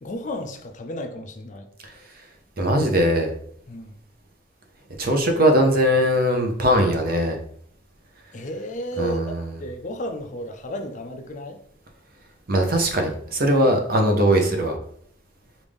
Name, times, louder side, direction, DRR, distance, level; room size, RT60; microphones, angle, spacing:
voice 1, 0.0-1.7 3.7-4.0 8.3-9.2 9.6-11.6, equal, 35° left, 5 dB, 0.4 m, -33 dB
voice 2, 2.6-3.3 5.0-7.4 9.0-9.5 12.5-14.8, equal, 45° right, 3 dB, 0.7 m, -20 dB
5.1 x 2.6 x 3.4 m, 0.66 s
head